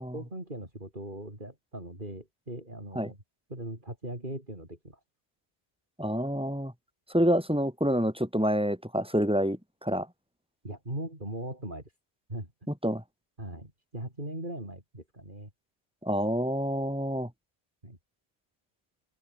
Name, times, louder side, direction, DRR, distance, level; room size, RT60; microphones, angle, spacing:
voice 1, 0.1-3.2 3.5-5.0 10.6-11.8 12.3-12.5 13.4-15.5 17.8-18.0, right 1 dB, 45° right, 6.8 m, -39 dB
voice 2, 6.0-6.7 7.1-10.1 12.8-13.0 16.0-17.3, equal, 5° right, 3.4 m, -27 dB
open air
omnidirectional pair, 1.1 m